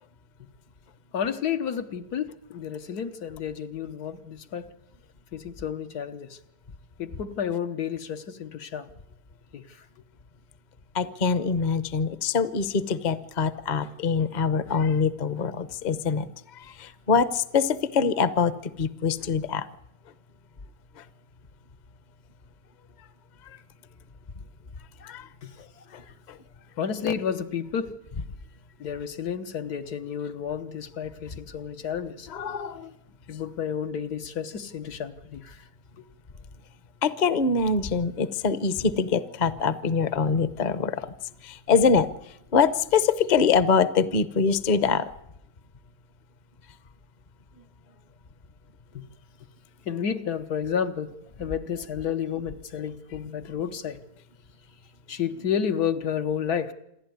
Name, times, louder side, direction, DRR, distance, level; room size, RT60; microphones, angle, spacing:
voice 1, 1.1-4.7 5.3-6.4 7.0-8.9 9.5-9.6 25.4-25.5 26.8-28.0 28.8-32.3 33.3-35.6 48.9-49.0 49.8-51.1 51.4-54.0 55.1-56.7, left 8 dB, 80° left, 1.7 m, -31 dB
voice 2, 10.9-16.3 16.6-18.5 18.8-19.7 25.0-25.3 25.9-26.0 26.3-26.4 32.3-32.9 37.0-41.1 41.4-42.1 42.5-45.1, left 5 dB, 40° left, 0.8 m, -24 dB
27.0 x 11.5 x 9.4 m
omnidirectional pair, 1.6 m